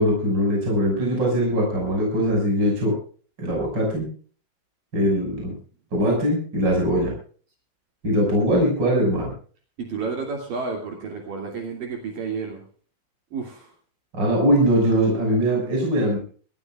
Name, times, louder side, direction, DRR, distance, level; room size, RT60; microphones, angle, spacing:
voice 1, 0.0-2.9 3.4-4.1 4.9-5.5 5.9-7.1 8.0-9.3 14.1-16.2, equal, 25° right, -1 dB, 6.5 m, -21 dB
voice 2, 9.8-12.6 13.3-13.7, right 4 dB, 60° right, 1 dB, 4.2 m, -31 dB
26.0 x 14.5 x 2.4 m, 0.42 s
omnidirectional pair, 4.6 m